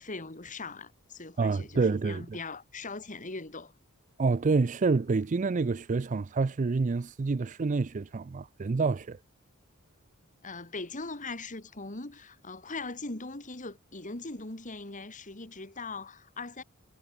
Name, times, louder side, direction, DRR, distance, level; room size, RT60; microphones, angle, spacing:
voice 1, 0.0-3.7 10.4-16.6, left 3 dB, 35° left, 2.3 m, -40 dB
voice 2, 1.4-2.4 4.2-9.2, right 4 dB, 35° right, 0.4 m, -28 dB
head